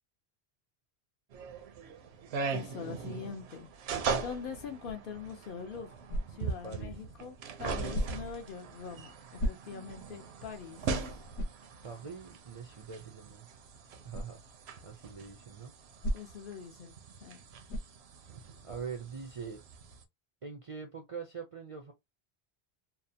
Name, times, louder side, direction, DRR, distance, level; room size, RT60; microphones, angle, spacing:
sound 1, 1.3-20.0, right 5 dB, 75° right, 0.8 m, -40 dB
voice 1, 2.5-5.9 6.3-11.1 16.1-17.4, left 6 dB, 60° left, 0.6 m, -43 dB
sound 2, 6.1-6.6 7.9-8.4 9.4-10.0 10.5-10.6 11.3-11.7 14.1-14.4 16.0-16.5 17.7-18.0, equal, 80° left, 0.9 m, -35 dB
voice 2, 6.6-7.0 11.8-13.5 14.0-14.4 14.8-15.7 18.6-19.6 20.4-21.9, right 5 dB, 50° right, 0.4 m, -43 dB
2.7 x 2.0 x 2.6 m
omnidirectional pair, 1.1 m